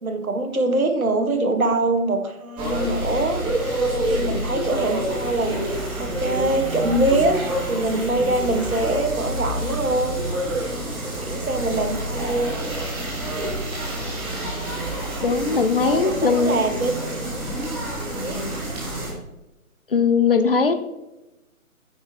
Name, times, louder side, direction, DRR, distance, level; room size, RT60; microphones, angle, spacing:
voice 1, 0.0-3.4 3.9-5.7 6.0-10.2 10.8-12.5 15.9-17.5 18.1-18.4, right 2 dB, 70° right, 6 dB, 1.7 m, -24 dB
sound 1, 2.6-19.1, right 1 dB, 10° right, 2.0 m, -28 dB
voice 2, 15.2-16.7 19.9-20.7, left 5 dB, 40° left, 10 dB, 0.7 m, -19 dB
9.7 x 8.7 x 3.1 m, 0.97 s
figure-of-eight pair, 145°, 44 cm